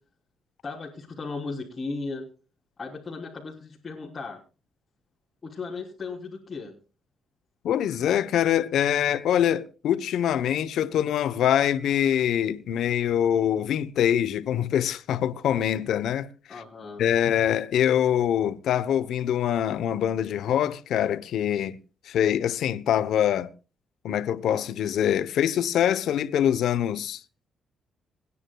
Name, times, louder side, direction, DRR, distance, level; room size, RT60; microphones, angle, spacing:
voice 1, 0.6-2.3 2.8-4.4 5.4-6.7 16.5-17.0, left 3 dB, 30° left, 3.3 m, -36 dB
voice 2, 7.6-16.6 17.0-21.8 22.1-23.5 24.0-27.2, left 10 dB, 75° left, 0.9 m, -24 dB
26.5 x 9.9 x 2.3 m
cardioid pair, 90°, 0 cm